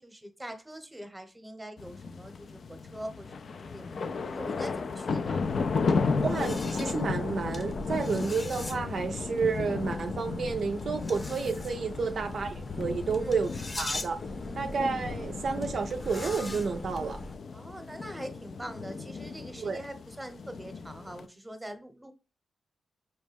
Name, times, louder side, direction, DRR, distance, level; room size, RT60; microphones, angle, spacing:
voice 1, 0.0-5.4 12.0-12.3 13.2-13.4 13.8-13.9 14.4-14.9 17.5-22.1, right 1 dB, 15° right, 0.8 m, -44 dB
sound 1, 1.8-21.3, left 4 dB, 65° left, 0.3 m, -34 dB
sound 2, 5.4-17.4, left 1 dB, 40° left, 0.7 m, -41 dB
voice 2, 6.2-13.5 13.8-14.2 14.5-17.2 19.6-19.8, right 5 dB, 65° right, 0.3 m, -31 dB
5.1 x 2.1 x 3.3 m
supercardioid pair, 40°, 0 cm